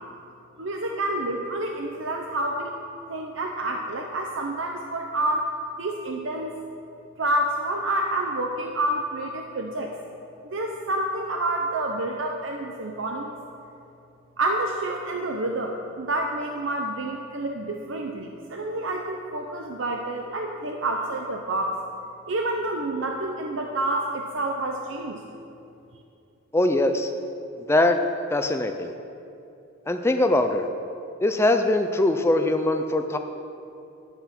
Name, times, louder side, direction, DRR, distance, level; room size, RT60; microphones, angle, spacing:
voice 1, 0.6-2.7 3.1-5.5 5.8-6.6 7.2-9.9 10.4-13.4 14.4-21.8 22.3-25.2, right 1 dB, 65° right, 2 dB, 0.7 m, -28 dB
voice 2, 26.5-27.1 27.7-28.0 28.3-28.9 29.9-30.7 31.2-33.2, left 1 dB, 10° left, 6 dB, 0.4 m, -22 dB
10.5 x 8.0 x 5.9 m, 2.7 s
head